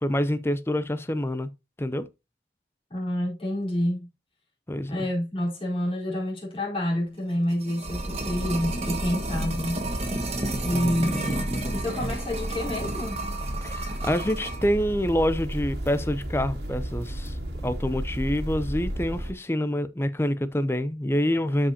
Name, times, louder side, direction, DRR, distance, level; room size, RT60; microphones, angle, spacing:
voice 1, 0.0-1.5 1.8-2.0 4.7-5.1 10.7-11.1 13.6-17.4 17.6-21.7, equal, 15° left, 0.5 m, -27 dB
voice 2, 2.9-4.1 4.9-9.8 10.6-11.4 11.7-13.2, left 1 dB, 30° left, 3.9 m, -28 dB
sound 1, 7.3-14.7 15.0-15.1, right 2 dB, 35° right, 1.5 m, -32 dB
sound 2, 7.8-19.3, equal, 70° right, 2.0 m, -33 dB
12.0 x 5.1 x 2.8 m
head